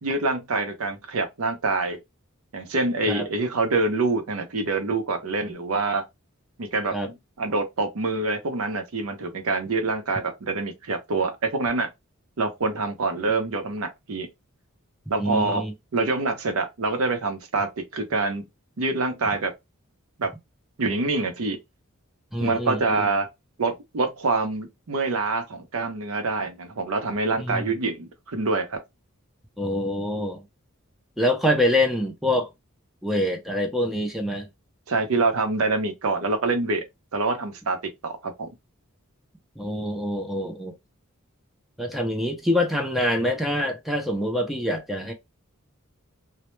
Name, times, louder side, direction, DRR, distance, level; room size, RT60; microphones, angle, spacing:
voice 1, 0.0-2.0 2.5-6.0 6.6-11.9 12.4-14.3 15.1-15.7 15.9-18.5 18.8-19.5 20.2-20.3 20.8-21.6 22.4-23.3 23.6-28.8 34.9-36.8 37.1-37.8 38.0-38.5, right 3 dB, 85° right, 0.6 m, -26 dB
voice 2, 15.2-15.7 22.3-23.1 27.4-27.7 29.6-30.4 31.2-32.5 33.0-34.5 39.6-40.8 41.8-45.1, left 1 dB, ahead, 0.4 m, -25 dB
2.1 x 2.1 x 3.0 m
head